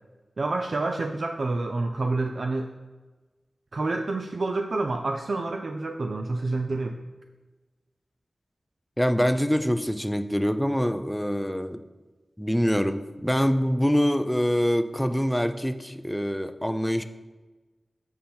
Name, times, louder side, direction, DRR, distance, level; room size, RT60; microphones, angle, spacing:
voice 1, 0.4-2.7 3.7-7.0, right 2 dB, 65° right, 5 dB, 0.4 m, -28 dB
voice 2, 9.0-11.8 12.4-17.0, equal, 5° left, 9 dB, 0.4 m, -25 dB
7.7 x 5.4 x 4.4 m, 1.2 s
wide cardioid pair, 100°, 0 cm